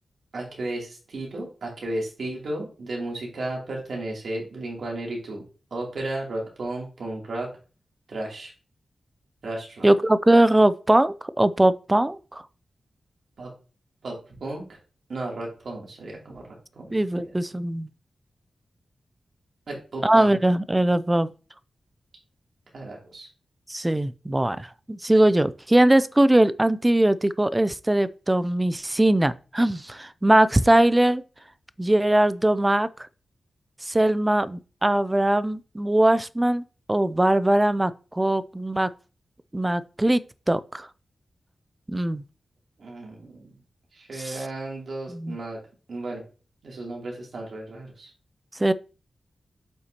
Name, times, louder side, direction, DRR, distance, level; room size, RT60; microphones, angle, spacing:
voice 1, 0.3-5.4 5.7-7.5 8.1-8.5 9.4-9.9 13.4-13.5 14.0-14.8 15.1-17.4 19.7-20.4 22.7-23.3 42.8-43.6 43.9-45.6 45.9-46.2 46.6-48.1, right 2 dB, 65° right, 2.9 m, -34 dB
voice 2, 9.8-12.4 16.9-17.9 20.0-21.3 23.7-31.2 31.8-32.9 33.9-38.9 39.5-40.2 40.5-40.9 41.9-42.2 44.2-44.4 45.1-45.4 48.6-48.7, right 1 dB, 15° right, 0.3 m, -21 dB
7.7 x 5.8 x 2.9 m
wide cardioid pair, 150°, 0 cm